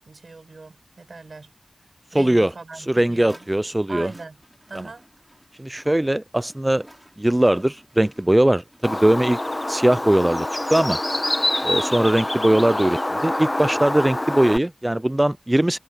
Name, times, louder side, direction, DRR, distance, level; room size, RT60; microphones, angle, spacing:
voice 1, 0.0-1.5 2.1-3.5 3.9-4.4 4.7-5.1, right 3 dB, 80° right, 7.2 m, -39 dB
voice 2, 2.1-2.5 2.9-4.1 5.6-6.9 7.2-9.4 9.7-11.0 11.6-15.8, right 1 dB, 20° right, 0.3 m, -20 dB
sound 1, 3.2-14.3, equal, 5° right, 4.3 m, -50 dB
Bird, 8.8-14.6, left 1 dB, 30° left, 1.1 m, -26 dB
wide cardioid pair, 50°, 0 cm